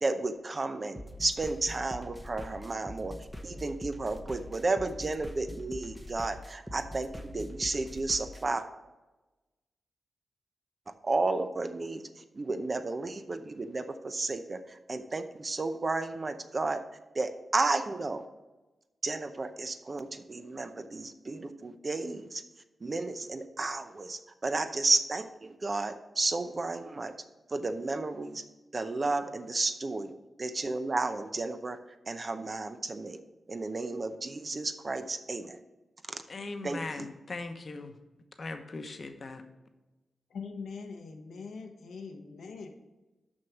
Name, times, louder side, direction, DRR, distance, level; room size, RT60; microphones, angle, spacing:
voice 1, 0.0-3.1 3.4-8.6 11.0-12.0 12.4-16.8 17.1-18.2 19.0-22.4 22.8-27.1 27.5-28.4 28.7-30.1 30.4-31.8 32.1-33.2 33.5-35.6 36.1-36.2 36.6-37.1, right 3 dB, 40° right, 9 dB, 0.7 m, -32 dB
sound 1, 1.0-8.4, left 1 dB, 5° right, 0.9 m, -43 dB
voice 2, 36.3-37.9 38.4-39.4, left 3 dB, 50° left, 6 dB, 0.9 m, -39 dB
voice 3, 40.3-42.7, left 5 dB, 85° left, 4 dB, 1.0 m, -42 dB
6.4 x 5.5 x 5.9 m, 1.1 s
cardioid pair, 75°, 0 cm